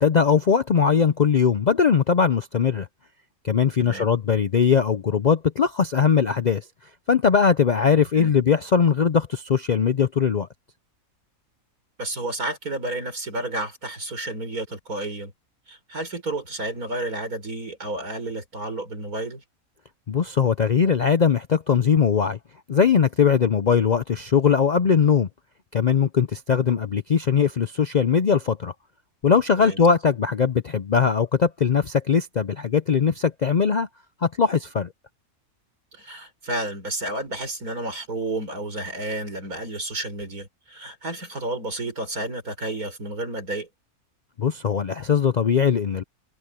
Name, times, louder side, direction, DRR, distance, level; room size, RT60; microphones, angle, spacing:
voice 1, 0.0-2.9 3.4-6.6 7.1-10.5 20.1-22.4 22.7-25.3 25.7-28.7 29.2-33.9 34.2-34.9 44.4-46.0, left 6 dB, 55° left, 0.5 m, -20 dB
voice 2, 3.8-4.1 8.1-8.3 12.0-15.3 15.7-19.4 29.6-29.8 35.9-43.7, right 2 dB, 85° right, 6.0 m, -31 dB
omnidirectional pair, 1.5 m